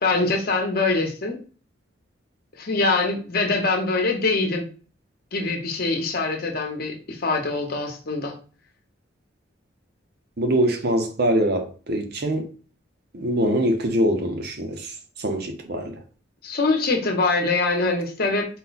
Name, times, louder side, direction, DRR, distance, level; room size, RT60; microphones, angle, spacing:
voice 1, 0.0-1.4 2.6-4.7 5.3-8.3 16.4-18.5, left 3 dB, 55° left, 0.9 m, -23 dB
voice 2, 10.4-12.4 13.1-15.9, right 1 dB, 55° right, 0.7 m, -23 dB
4.2 x 2.2 x 4.0 m
head